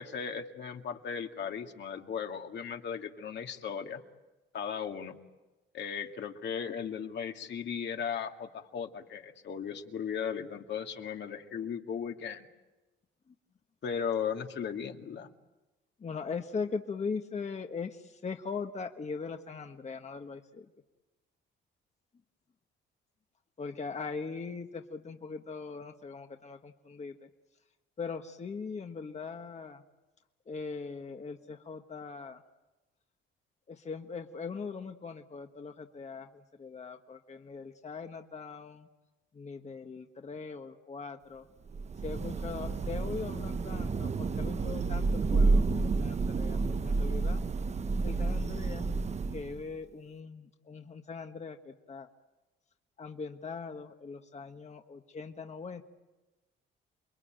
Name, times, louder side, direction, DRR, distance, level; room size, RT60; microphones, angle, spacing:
voice 1, 0.0-4.0 4.5-5.2 5.7-12.5 13.8-15.3, left 7 dB, 60° left, 4 dB, 2.2 m, -36 dB
voice 2, 16.0-20.7 23.6-27.3 28.0-29.8 30.5-32.4 33.7-38.9 39.3-41.5 42.0-47.4 47.7-48.9 49.3-52.1 53.0-55.8, left 5 dB, 35° left, 5 dB, 1.4 m, -40 dB
Thunder / Rain, 41.7-49.7, right 3 dB, 35° right, 1.0 m, -30 dB
29.0 x 22.0 x 9.1 m, 1.1 s
cardioid pair, 90°, 20 cm